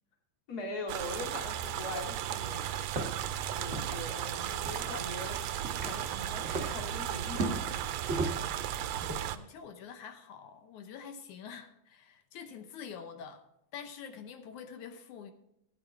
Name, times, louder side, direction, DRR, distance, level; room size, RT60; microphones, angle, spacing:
voice 1, 0.5-2.8 3.5-5.4 5.8-8.1, left 2 dB, 30° left, 2.7 m, -42 dB
sound 1, 0.9-9.4, right 11 dB, 75° right, 1.6 m, -35 dB
sound 2, 2.5-9.2, right 2 dB, 45° right, 0.8 m, -39 dB
voice 2, 8.7-13.4 13.7-15.3, left 7 dB, 75° left, 2.4 m, -46 dB
16.0 x 9.2 x 3.4 m
omnidirectional pair, 3.5 m